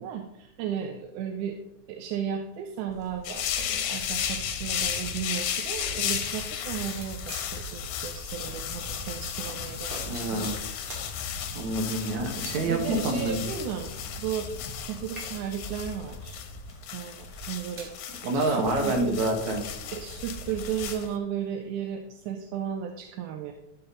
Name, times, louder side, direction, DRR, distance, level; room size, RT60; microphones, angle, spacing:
voice 1, 0.0-1.6 1.9-10.5 11.9-12.0 12.7-13.9 14.2-14.5 14.9-16.4 16.9-17.9 18.3-19.2 19.8-23.5, right 9 dB, 80° right, 4 dB, 2.1 m, -34 dB
sound 1, 2.9-20.9, equal, 10° left, 2.2 m, -43 dB
sound 2, 3.2-21.1, left 9 dB, 75° left, 2.1 m, -35 dB
sound 3, 4.7-5.4 5.8-5.9 6.3-7.6 8.5-8.6 9.5-9.6 9.9-10.6 10.9-11.0 11.8-12.2 13.2-14.8 15.1-15.6 16.3-16.6 17.3-18.0, right 2 dB, 40° right, 2.2 m, -45 dB
voice 2, 10.1-10.6 11.1-11.2 11.5-13.4 18.2-19.6, right 2 dB, 65° right, 1 dB, 3.0 m, -27 dB
12.0 x 5.8 x 4.0 m, 0.81 s
omnidirectional pair, 3.6 m